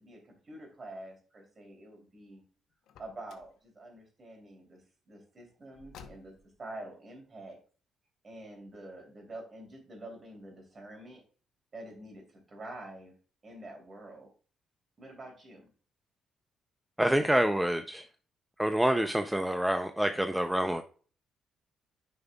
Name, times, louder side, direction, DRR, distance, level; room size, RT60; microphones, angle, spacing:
voice 1, 0.0-2.4 3.0-4.8 5.1-6.3 6.6-7.6 8.2-11.2 11.7-13.1 13.4-14.3 15.0-15.7, right 1 dB, 35° right, 2 dB, 2.9 m, -47 dB
Car, 2.8-3.6 5.7-6.6, left 6 dB, 85° left, 0.8 m, -53 dB
voice 2, 17.0-18.1 18.6-20.8, right 1 dB, 5° right, 7 dB, 0.5 m, -27 dB
9.8 x 5.3 x 2.3 m, 0.40 s
cardioid pair, 90°, 0 cm